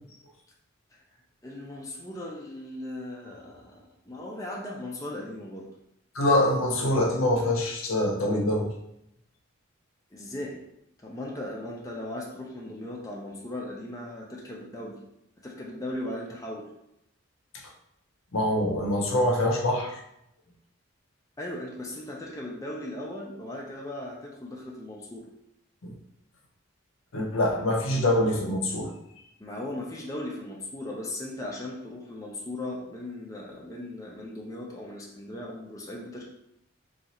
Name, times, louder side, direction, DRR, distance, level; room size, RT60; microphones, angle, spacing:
voice 1, 1.4-5.7 10.1-10.6 11.0-15.0 15.4-16.7 21.4-25.3 29.4-36.3, left 1 dB, 15° left, -3 dB, 0.4 m, -38 dB
voice 2, 6.1-8.7 18.3-20.0 25.8-25.9 27.1-28.9, left 1 dB, 80° left, 1 dB, 0.7 m, -24 dB
2.7 x 2.4 x 4.1 m, 0.80 s
head